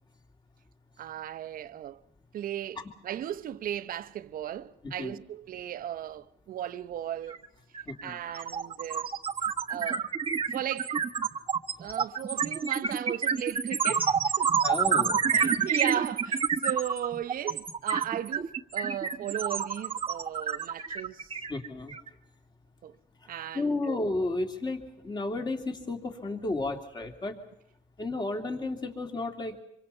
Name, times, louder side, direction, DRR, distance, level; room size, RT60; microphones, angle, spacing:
voice 1, 1.0-2.0 2.3-7.4 8.0-9.1 9.7-10.1 10.5-10.9 11.8-14.5 15.3-21.3 22.8-23.0 23.3-24.0, right 11 dB, 55° right, 0.9 m, -36 dB
sound 1, 7.3-7.5 7.7-22.1, right 6 dB, 30° right, 1.2 m, -28 dB
voice 2, 7.9-8.2 14.6-15.6 21.5-21.9 23.5-27.4 28.0-29.6, left 2 dB, 25° left, 2.9 m, -33 dB
26.0 x 24.5 x 5.6 m
cardioid pair, 110°, 17 cm